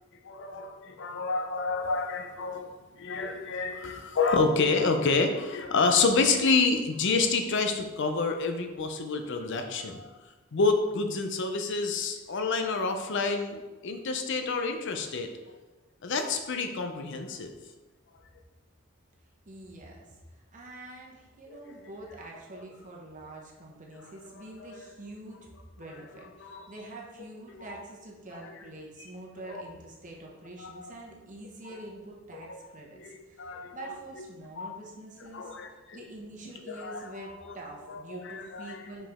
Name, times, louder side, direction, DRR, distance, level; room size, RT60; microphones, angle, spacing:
voice 1, 0.2-10.1 10.5-15.3 16.0-17.5 21.5-21.6 23.9-24.1 24.6-24.8 26.4-26.7 27.7-27.8 28.3-28.5 29.4-29.6 30.6-30.9 32.3-32.6 33.0-33.8 34.6-34.8 35.3-36.0 36.7-37.6 37.9-38.8, left 4 dB, 60° left, 6 dB, 0.6 m, -29 dB
voice 2, 19.5-20.2 20.5-25.4 25.8-35.5 35.9-39.1, right 2 dB, 40° right, -1 dB, 1.1 m, -45 dB
5.5 x 5.0 x 3.6 m, 1.2 s
head